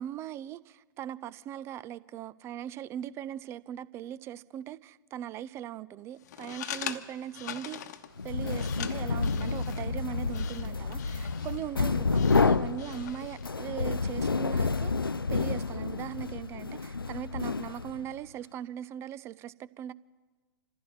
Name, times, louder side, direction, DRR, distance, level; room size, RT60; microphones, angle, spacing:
voice 1, 0.0-7.8 8.2-19.9, right 10 dB, 25° right, 0.4 m, -40 dB
sound 1, 6.2-13.5, left 10 dB, 50° left, 1.0 m, -43 dB
sound 2, 8.2-18.1, left 4 dB, 85° left, 0.4 m, -29 dB
27.0 x 15.0 x 3.2 m
figure-of-eight pair, 105°, 12 cm